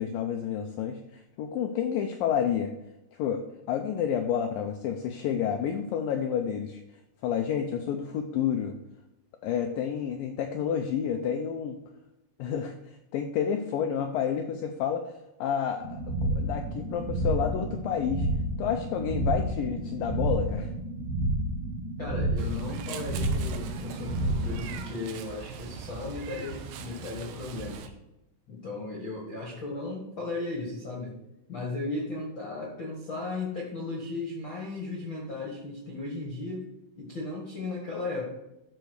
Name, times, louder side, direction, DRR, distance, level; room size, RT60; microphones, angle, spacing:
voice 1, 0.0-2.7 3.2-6.8 7.2-8.8 9.4-11.8 12.4-18.3 18.6-20.7, left 8 dB, 80° left, 5 dB, 2.0 m, -30 dB
sound 1, 15.8-24.9, right 1 dB, 55° right, 1.8 m, -30 dB
voice 2, 22.0-27.9 28.5-31.1 31.5-36.7 36.9-38.2, left 3 dB, 45° left, -3 dB, 1.7 m, -36 dB
Meow, 22.4-27.9, right 7 dB, 75° right, 2.4 m, -42 dB
13.0 x 4.6 x 6.5 m, 0.92 s
omnidirectional pair, 4.7 m